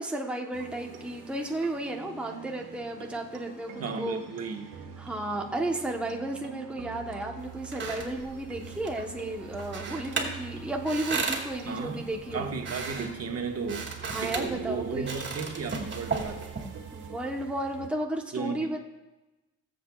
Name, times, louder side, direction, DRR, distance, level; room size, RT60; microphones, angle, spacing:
voice 1, 0.0-4.2 5.0-12.5 14.1-15.1 16.9-18.8, right 1 dB, 5° right, 0 dB, 1.1 m, -33 dB
sound 1, 0.5-16.3, left 4 dB, 85° left, 2.5 m, -53 dB
sound 2, 0.5-17.9, right 8 dB, 85° right, 1.4 m, -45 dB
voice 2, 3.8-4.8 11.6-12.0 12.3-13.9 14.2-16.5 18.3-18.8, right 5 dB, 55° right, 3 dB, 1.5 m, -34 dB
sound 3, 7.4-17.1, right 4 dB, 40° right, 2.2 m, -37 dB
21.0 x 7.7 x 2.4 m, 1.1 s
cardioid pair, 90°, 30 cm